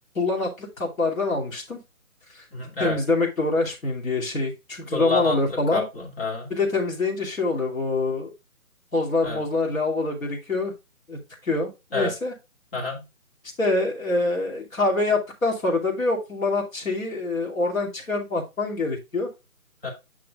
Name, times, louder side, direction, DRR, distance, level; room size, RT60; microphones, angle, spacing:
voice 1, 0.1-1.8 2.3-2.5 2.8-5.8 6.5-8.3 8.9-10.7 11.1-12.3 13.6-19.3, left 3 dB, 65° left, -1 dB, 2.7 m, -25 dB
voice 2, 2.5-3.0 4.9-5.4 5.7-6.5 9.2-9.4 11.9-12.1 12.7-13.0 19.8-19.9, left 3 dB, 40° left, 0 dB, 2.3 m, -28 dB
8.7 x 5.9 x 2.4 m, 0.25 s
figure-of-eight pair, 155°, 44 cm